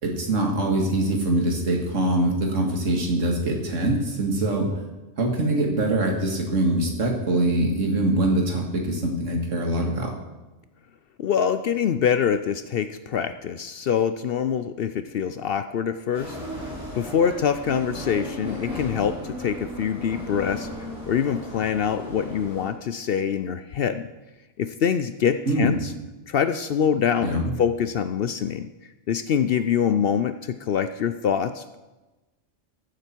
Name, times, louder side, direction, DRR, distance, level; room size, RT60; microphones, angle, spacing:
voice 1, 0.0-4.7 5.2-10.1 25.5-25.7 27.2-27.5, right 1 dB, 75° right, 1 dB, 2.3 m, -23 dB
voice 2, 11.2-16.4 16.9-20.7 21.1-24.1 24.6-25.9 26.3-28.7 29.1-31.8, left 8 dB, 60° left, 11 dB, 0.6 m, -25 dB
sound 1, 16.1-22.7, equal, 5° right, 4.2 m, -36 dB
14.0 x 8.0 x 4.5 m, 1.1 s
omnidirectional pair, 1.3 m